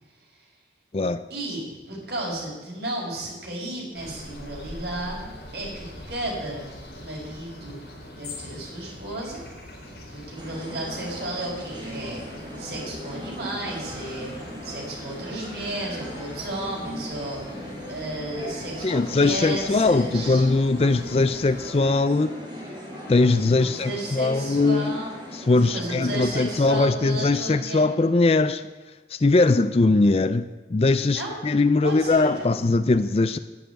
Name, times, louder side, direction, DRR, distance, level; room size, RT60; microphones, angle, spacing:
voice 1, 1.3-6.6 6.9-7.8 8.1-9.4 10.1-17.5 17.9-20.4 23.7-25.1 25.6-27.9 31.1-31.3 31.8-32.5, right 1 dB, 65° right, -3 dB, 5.6 m, -33 dB
sound 1, 3.9-21.8, left 1 dB, 70° left, 4.2 m, -43 dB
sound 2, 10.4-26.6, equal, 30° right, 5.2 m, -39 dB
voice 2, 18.8-22.4 23.1-25.0 25.3-28.6 29.1-33.4, left 3 dB, 35° left, 11 dB, 0.4 m, -21 dB
11.0 x 9.3 x 8.9 m, 1.3 s
head